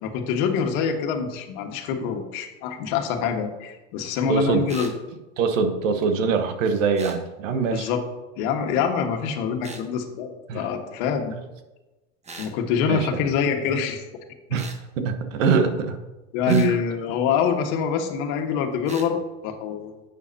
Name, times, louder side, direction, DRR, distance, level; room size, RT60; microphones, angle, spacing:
voice 1, 0.0-4.9 7.7-8.0 8.4-10.3 10.5-11.4 12.4-14.0 16.3-20.0, left 6 dB, 60° left, 4 dB, 1.7 m, -25 dB
voice 2, 4.3-4.7 5.4-7.9 10.5-10.6 12.9-13.1 14.5-14.7 15.0-16.0 16.5-16.8, right 5 dB, 75° right, 7 dB, 1.4 m, -23 dB
sound 1, 4.7-5.0 7.0-7.2 9.6-9.9 12.2-12.6 14.5-14.8 16.5-16.7 18.9-19.1, right 3 dB, 15° right, 1.2 m, -40 dB
11.0 x 8.2 x 2.8 m, 1.1 s
hypercardioid pair, 105°, 39 cm